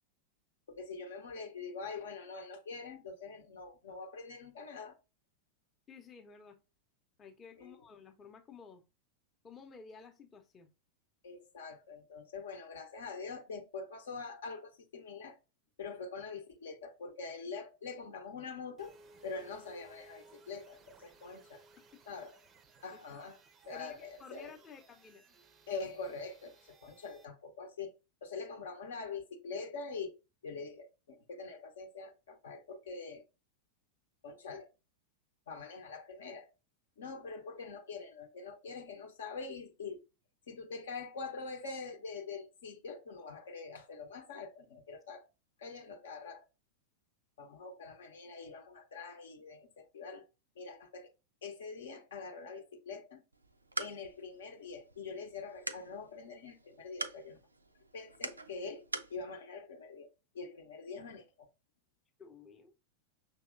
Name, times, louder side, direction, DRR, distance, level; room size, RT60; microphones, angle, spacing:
voice 1, 0.7-5.0 7.6-7.7 11.2-15.4 15.8-19.0 19.2-21.6 22.1-22.4 22.8-23.4 23.7-24.5 25.7-27.9 28.2-30.1 30.4-33.2 34.2-34.7 35.5-36.5 37.0-40.0 40.5-45.3 45.6-46.5 47.4-50.2 50.6-51.1 51.4-53.2 53.8-57.4 57.9-58.8 59.1-60.1 60.3-61.2, left 4 dB, 65° left, 0.8 m, -44 dB
voice 2, 5.9-6.6 7.2-8.8 9.4-10.7 21.9-22.0 22.9-23.0 23.7-25.2 62.2-62.7, left 5 dB, 25° left, 0.7 m, -53 dB
sound 1, 18.8-27.3, right 3 dB, 25° right, 0.5 m, -61 dB
sound 2, 53.3-59.2, right 3 dB, 80° right, 0.4 m, -44 dB
6.2 x 2.8 x 2.5 m
figure-of-eight pair, 90°, 0 cm